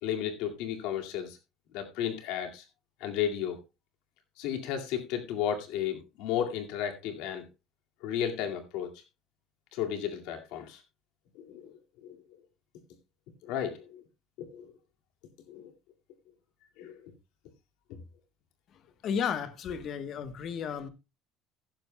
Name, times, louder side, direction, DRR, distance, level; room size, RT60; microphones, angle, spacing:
voice 1, 0.0-1.4 1.7-2.6 3.0-3.6 4.4-7.5 8.0-8.9 9.7-10.8 11.4-12.2 13.4-14.0 14.4-14.7 15.5-15.7 16.8-17.1, left 9 dB, 80° left, 2.1 m, -33 dB
voice 2, 19.0-20.9, left 7 dB, 45° left, 1.1 m, -33 dB
15.0 x 11.5 x 2.2 m
cardioid pair, 155°, 0 cm